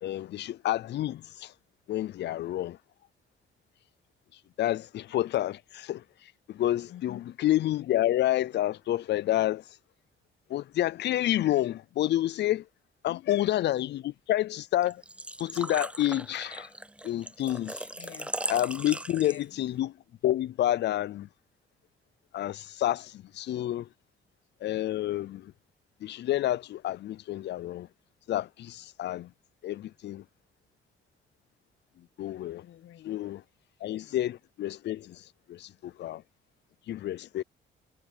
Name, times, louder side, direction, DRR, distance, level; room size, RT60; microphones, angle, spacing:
voice 1, 0.0-1.5 1.9-2.8 4.3-9.8 10.5-12.7 13.0-15.0 15.4-16.7 17.0-17.9 18.5-20.0 20.2-21.3 22.3-23.9 24.6-25.5 26.0-27.9 28.3-29.3 29.6-30.2 32.0-32.6 33.0-33.4 33.8-36.2 36.9-37.4, left 13 dB, 60° left, 0.5 m, -29 dB
voice 2, 6.9-7.3 13.1-13.4 17.9-18.3 19.1-19.5 32.6-33.2 34.0-34.2, left 13 dB, 85° left, 1.7 m, -47 dB
Engine / Trickle dribble / Fill (with liquid), 14.8-19.7, right 1 dB, 5° right, 0.6 m, -38 dB
cardioid pair, 90°, 20 cm